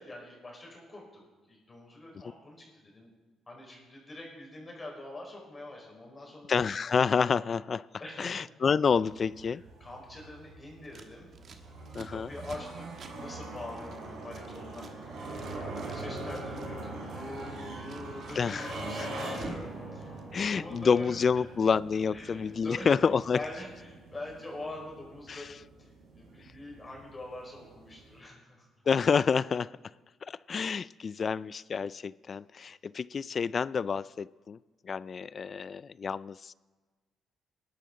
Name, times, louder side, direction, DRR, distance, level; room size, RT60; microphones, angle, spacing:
voice 1, 0.0-3.1 3.5-6.5 8.0-8.4 9.8-11.3 12.1-14.9 15.7-20.2 20.5-21.2 22.1-22.9 23.3-25.9 26.1-28.7, left 2 dB, 25° left, -1 dB, 4.9 m, -44 dB
voice 2, 6.5-7.8 8.2-9.6 11.9-12.3 18.4-19.1 20.3-23.4 25.3-25.5 28.9-29.7 30.2-34.6 34.8-36.5, left 6 dB, 45° left, 20 dB, 0.3 m, -28 dB
sound 1, 8.9-28.2, right 2 dB, 80° right, 3.5 m, -43 dB
Scissors, 10.8-14.9 15.2-16.8 17.1-19.7 19.9-20.8, right 4 dB, 55° right, 1.5 m, -50 dB
19.5 x 11.5 x 3.9 m, 1.3 s
cardioid pair, 90°, 0 cm